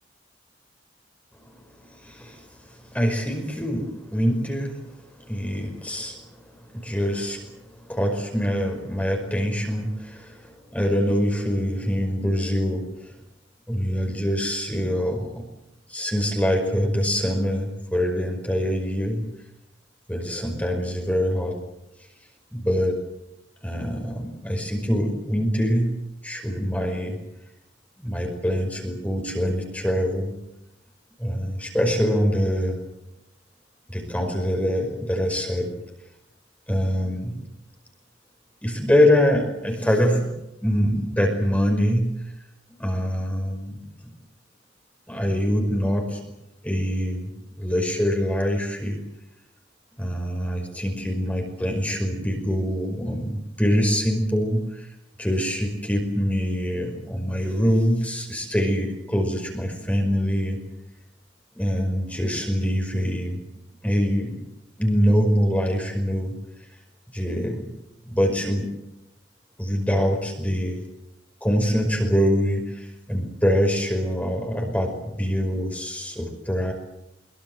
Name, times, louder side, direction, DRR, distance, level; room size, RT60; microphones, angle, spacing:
voice 1, 1.8-4.9 5.2-6.2 6.7-13.1 13.7-15.4 15.9-19.3 20.1-21.6 22.5-23.0 23.6-27.2 28.0-30.3 31.2-32.8 33.9-35.7 36.7-37.4 38.6-40.3 40.6-42.2 42.7-44.1 45.1-46.2 46.6-47.3 47.6-49.0 50.0-54.9 55.2-60.6 61.5-63.4 63.8-64.5 64.8-66.3 67.1-67.7 68.0-68.7 69.6-70.8 71.4-76.7, equal, 10° left, 2 dB, 5.2 m, -24 dB
23.5 x 23.0 x 8.0 m, 0.86 s
head